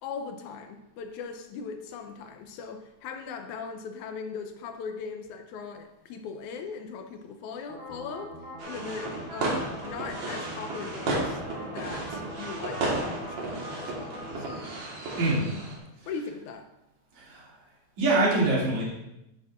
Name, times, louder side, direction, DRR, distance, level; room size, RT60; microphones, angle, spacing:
voice 1, 0.0-8.3 8.6-14.7 15.4-15.5 16.1-16.7, left 5 dB, 85° left, 6 dB, 2.2 m, -39 dB
sound 1, 7.7-14.5, equal, 35° right, 0.7 m, -42 dB
sound 2, 8.6-15.8, right 2 dB, 55° right, 2.5 m, -33 dB
voice 2, 15.2-15.5 17.2-17.5 18.0-18.8, right 2 dB, 75° right, -6 dB, 4.0 m, -24 dB
9.4 x 9.4 x 2.5 m, 0.89 s
omnidirectional pair, 3.4 m